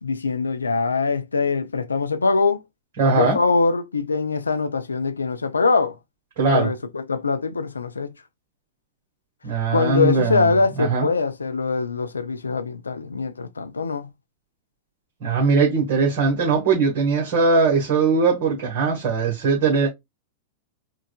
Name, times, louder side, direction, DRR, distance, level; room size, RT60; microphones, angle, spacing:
voice 1, 0.0-2.6 3.2-6.0 6.5-8.1 9.7-14.1, left 4 dB, 85° left, 0.5 m, -23 dB
voice 2, 3.0-3.4 6.4-6.7 9.4-10.5 10.8-11.1 15.2-19.9, right 4 dB, 55° right, 1.5 m, -20 dB
4.5 x 2.5 x 2.3 m
figure-of-eight pair, 100°, 0 cm